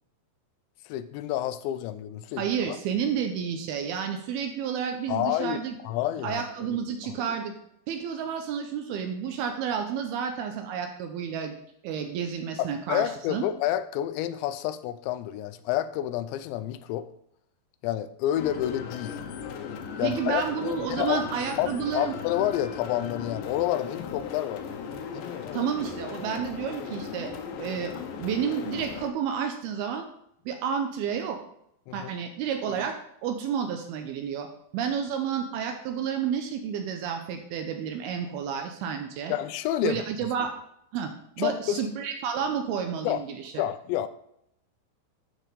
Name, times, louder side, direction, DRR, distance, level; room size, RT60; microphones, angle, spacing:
voice 1, 0.9-2.8 5.1-5.6 5.8-6.4 7.0-7.1 12.6-17.1 17.8-19.2 20.0-21.2 21.6-24.6 25.1-25.7 31.9-32.1 39.3-40.0 41.4-41.8 43.0-43.2 43.6-44.1, left 12 dB, 90° left, 12 dB, 2.9 m, -29 dB
voice 2, 2.4-5.7 6.2-7.5 7.9-11.6 11.8-13.4 20.0-22.1 25.5-30.1 30.5-31.4 31.9-33.0 33.2-34.5 34.7-39.4 39.8-40.5 40.9-41.1 41.4-43.6, right 7 dB, 80° right, 5 dB, 2.4 m, -30 dB
sound 1, 18.4-29.1, left 6 dB, 75° left, 2.2 m, -37 dB
12.5 x 4.7 x 5.2 m, 0.74 s
omnidirectional pair, 5.1 m